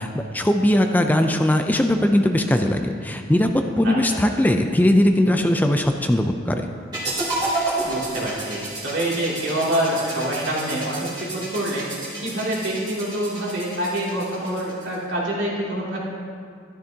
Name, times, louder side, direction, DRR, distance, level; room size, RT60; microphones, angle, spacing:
voice 1, 0.0-3.5 3.8-6.7, left 1 dB, 10° left, 5 dB, 0.4 m, -19 dB
sound 1, 6.9-15.0, right 2 dB, 25° right, 2.7 m, -31 dB
voice 2, 7.8-11.8 12.2-16.0, right 1 dB, 90° right, -5 dB, 2.7 m, -26 dB
12.5 x 12.0 x 2.8 m, 2.3 s
head